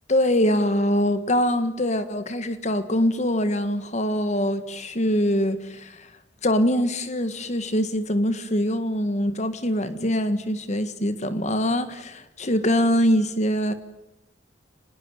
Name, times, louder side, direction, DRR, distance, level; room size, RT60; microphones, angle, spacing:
voice 1, 0.1-6.1 6.4-13.7, equal, 40° left, 11 dB, 1.7 m, -23 dB
26.0 x 20.5 x 9.3 m, 0.93 s
head